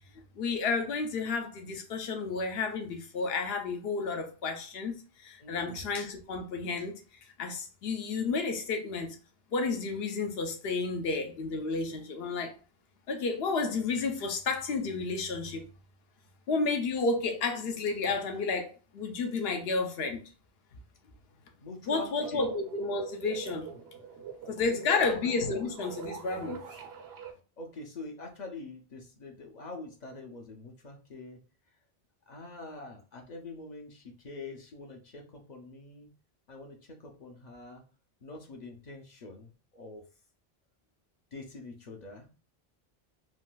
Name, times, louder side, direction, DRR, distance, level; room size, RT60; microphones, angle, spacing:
voice 1, 0.4-7.0 7.4-9.2 9.5-12.6 13.1-15.7 16.5-20.2 21.9-23.7 24.5-26.6, left 4 dB, 75° left, 0.9 m, -31 dB
voice 2, 5.4-5.9 21.6-22.5 24.6-25.2 27.6-31.4 32.3-36.1 36.5-37.8 38.2-40.1 41.3-42.3, left 3 dB, 50° left, 0.7 m, -45 dB
sound 1, 22.1-27.3, right 6 dB, 90° right, 0.8 m, -43 dB
3.8 x 2.5 x 2.2 m
omnidirectional pair, 1.0 m